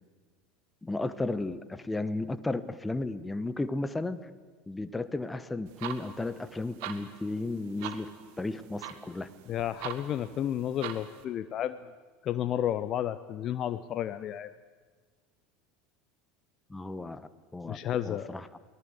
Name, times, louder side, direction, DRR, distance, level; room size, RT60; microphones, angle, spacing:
voice 1, 0.8-4.2 4.7-8.1 8.4-9.3 16.7-17.8 18.1-18.6, left 2 dB, 10° left, 13 dB, 1.1 m, -34 dB
sound 1, 5.7-11.2, right 10 dB, 60° right, 1.7 m, -43 dB
voice 2, 9.5-11.8 12.2-14.5 17.6-18.3, left 11 dB, 40° left, 12 dB, 0.7 m, -32 dB
23.0 x 18.0 x 8.1 m, 1.4 s
figure-of-eight pair, 75°, 0 cm